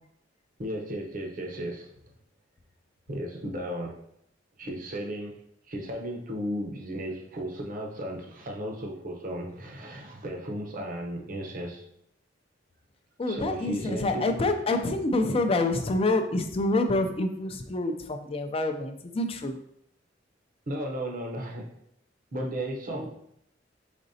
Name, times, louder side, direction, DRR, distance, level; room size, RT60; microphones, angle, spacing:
voice 1, 0.6-1.9 3.1-4.0 4.6-5.4 5.7-11.8 13.3-14.3 20.7-21.7 22.3-23.1, equal, 50° right, 1 dB, 0.8 m, -35 dB
voice 2, 13.2-19.6 22.9-23.1, left 2 dB, 30° left, 6 dB, 0.4 m, -27 dB
5.1 x 3.8 x 2.7 m, 0.73 s
head